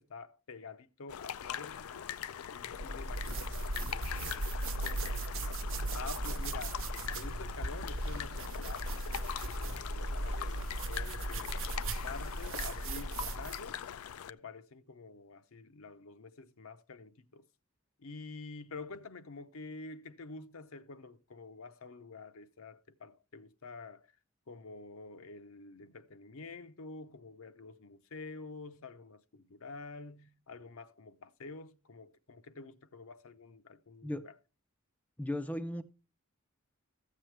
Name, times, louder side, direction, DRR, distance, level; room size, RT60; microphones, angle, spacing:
voice 1, 0.0-2.1 2.5-4.4 4.8-5.6 5.9-11.6 12.0-13.8 14.3-17.4 18.0-24.1 24.5-34.4, left 3 dB, 70° left, 0.7 m, -48 dB
sound 1, 1.1-14.3, left 9 dB, 90° left, 0.4 m, -42 dB
Scratching beard, 2.7-13.7, right 2 dB, 60° right, 0.8 m, -37 dB
voice 2, 35.2-35.8, left 1 dB, 5° left, 0.4 m, -36 dB
14.5 x 7.5 x 3.2 m
head